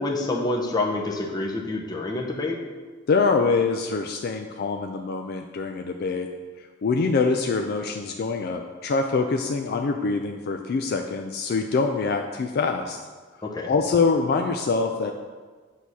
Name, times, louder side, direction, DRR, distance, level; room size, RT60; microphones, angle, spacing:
voice 1, 0.0-2.6 13.4-13.7, left 2 dB, 20° left, -1 dB, 0.7 m, -27 dB
voice 2, 3.1-6.3 6.6-13.0 13.7-15.1, left 4 dB, 50° left, 4 dB, 0.3 m, -24 dB
8.1 x 2.7 x 6.0 m, 1.4 s
head